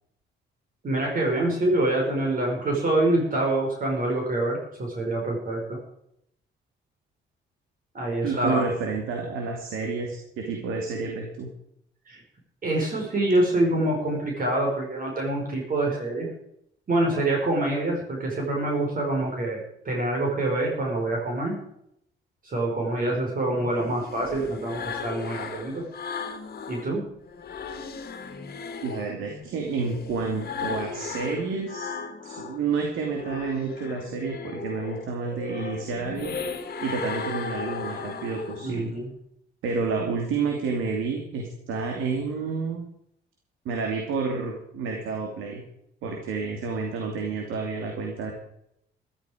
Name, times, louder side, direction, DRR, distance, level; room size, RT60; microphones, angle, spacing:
voice 1, 0.8-5.8 7.9-8.7 12.1-12.2 12.6-16.3 16.9-21.6 22.4-25.8 26.7-27.0 38.6-39.1, right 1 dB, 45° right, -1 dB, 5.0 m, -26 dB
voice 2, 8.2-11.5 28.8-31.9 32.2-36.3 36.8-38.9 39.6-42.8 43.6-45.6 46.0-48.3, right 4 dB, 90° right, 2 dB, 2.6 m, -29 dB
sound 1, 23.5-26.9 27.3-32.6 33.0-38.9, left 5 dB, 50° left, 1.8 m, -36 dB
14.0 x 13.0 x 5.1 m, 0.75 s
cardioid pair, 90°, 20 cm